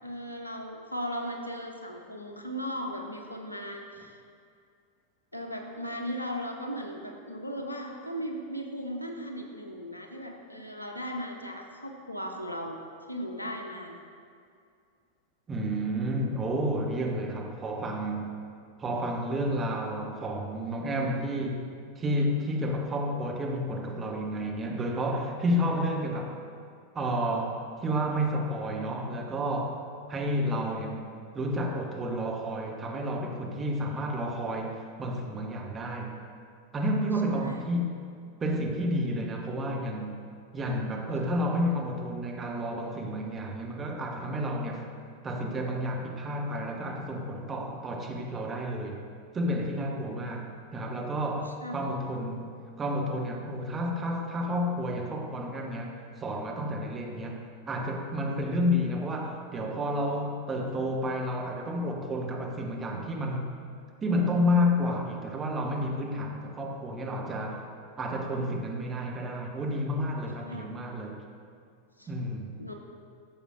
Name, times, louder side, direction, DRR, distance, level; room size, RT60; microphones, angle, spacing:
voice 1, 0.0-4.2 5.3-12.8 13.1-14.0 37.3-37.6 51.6-51.9 70.5-70.7 72.0-72.1 72.6-72.7, equal, 85° left, 2 dB, 0.9 m, -37 dB
voice 2, 15.5-18.3 18.8-21.7 21.9-26.3 26.9-29.8 30.1-31.1 31.3-36.2 36.7-37.9 38.4-40.2 40.5-44.8 45.2-49.0 49.3-52.5 52.8-63.5 64.0-67.7 68.0-71.2 72.1-72.5, equal, 20° right, 0 dB, 1.2 m, -30 dB
13.0 x 7.1 x 2.6 m, 2.3 s
figure-of-eight pair, 90°, 0 cm